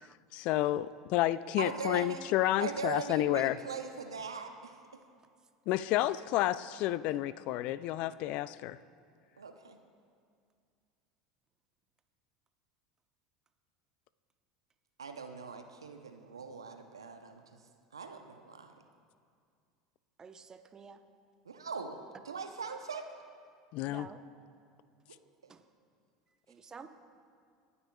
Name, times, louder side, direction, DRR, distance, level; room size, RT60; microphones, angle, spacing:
voice 1, 0.3-3.6 5.7-8.8 23.7-24.1, left 14 dB, 55° left, 17 dB, 0.3 m, -30 dB
voice 2, 1.6-2.2 2.6-4.7 9.4-9.8 15.0-17.4 17.9-18.7 21.5-22.0 22.2-23.1, right 5 dB, 90° right, 6 dB, 0.8 m, -40 dB
voice 3, 20.2-21.0 23.9-24.2 25.5-25.6 26.5-26.9, right 5 dB, 25° right, 8 dB, 0.9 m, -50 dB
27.5 x 9.6 x 2.3 m, 2.2 s
hypercardioid pair, 80°, 2 cm